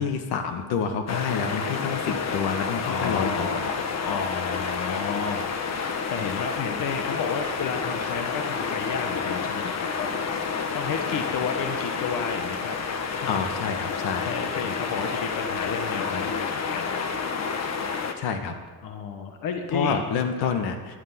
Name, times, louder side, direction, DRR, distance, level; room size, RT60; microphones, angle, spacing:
voice 1, 0.0-3.8 13.3-14.3 18.2-18.5 19.7-20.7, left 6 dB, 80° left, 6 dB, 2.0 m, -28 dB
sound 1, 1.1-18.1, left 5 dB, 45° left, 1.5 m, -29 dB
voice 2, 2.8-3.8 4.0-5.4 6.1-10.1 10.7-12.8 13.1-13.4 14.2-16.9 18.8-20.0 20.4-20.5, left 5 dB, 60° left, 4 dB, 1.5 m, -31 dB
12.0 x 9.8 x 9.8 m, 1.4 s
cardioid pair, 120°, 38 cm